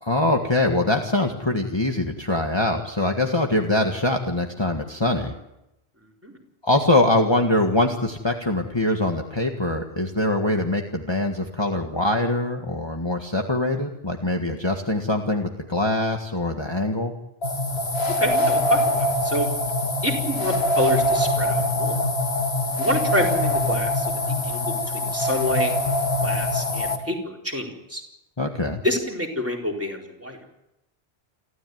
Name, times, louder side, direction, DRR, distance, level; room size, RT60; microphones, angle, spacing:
voice 1, 0.0-5.3 6.6-17.1 28.4-28.8, left 1 dB, 25° left, 2 dB, 1.8 m, -23 dB
sound 1, 17.4-27.0, left 1 dB, 75° left, 2.5 m, -23 dB
voice 2, 18.1-19.5 20.0-22.0 22.8-24.1 24.4-25.7 26.2-28.0 28.8-30.4, equal, 15° right, 0 dB, 4.2 m, -27 dB
29.0 x 13.5 x 9.4 m, 0.87 s
omnidirectional pair, 1.1 m